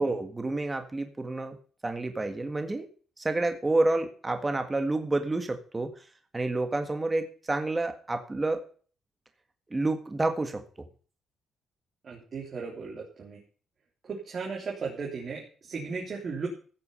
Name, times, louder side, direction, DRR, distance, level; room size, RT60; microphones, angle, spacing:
voice 1, 0.0-1.6 1.8-2.9 3.2-5.9 6.3-8.6 9.7-10.6, right 2 dB, 20° right, 7 dB, 1.8 m, -29 dB
voice 2, 12.0-13.4 14.0-16.5, right 5 dB, 45° right, -2 dB, 3.4 m, -36 dB
15.0 x 6.9 x 5.6 m, 0.41 s
cardioid pair, 90°, 0 cm